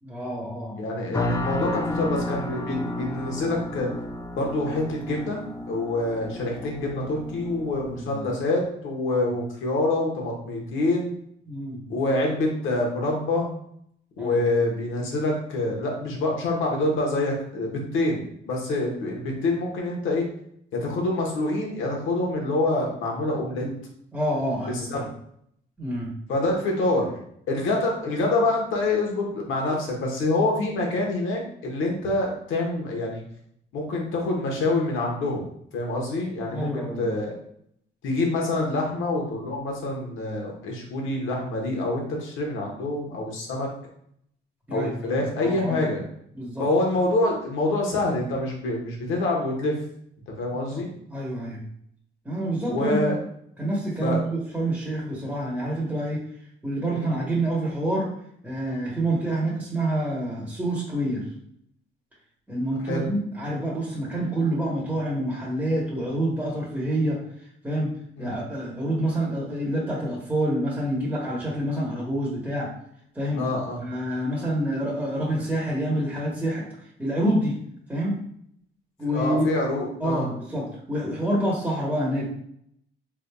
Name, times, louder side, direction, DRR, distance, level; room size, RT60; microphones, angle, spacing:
voice 1, 0.0-0.8 8.0-8.2 11.5-11.8 14.2-14.4 23.6-23.7 24.1-25.1 25.8-26.1 36.5-37.1 44.7-45.1 45.4-45.8 46.3-46.7 50.7-50.8 51.1-51.6 52.2-53.2 53.6-56.2 56.6-58.1 58.4-61.2 62.5-67.2 67.6-67.9 68.2-72.7 73.1-73.5 73.8-76.7 77.0-77.6 77.9-78.2 79.0-79.5 80.0-82.3, right 1 dB, 10° right, -6 dB, 1.1 m, -27 dB
voice 2, 0.8-3.9 4.3-5.4 5.7-11.1 11.9-13.5 14.2-20.3 20.7-23.7 24.6-25.0 26.3-27.1 27.5-33.2 33.7-35.5 35.7-37.3 38.0-43.7 44.7-46.0 46.6-49.8 50.4-50.9 52.6-53.2 54.0-54.2 56.9-57.1 62.8-63.0 68.2-68.4 73.4-73.8 79.1-80.3, left 2 dB, 85° left, -1 dB, 1.1 m, -26 dB
sound 1, 1.1-8.0, left 1 dB, 15° left, 0.4 m, -33 dB
3.7 x 3.4 x 2.3 m, 0.70 s
cardioid pair, 90°, 20 cm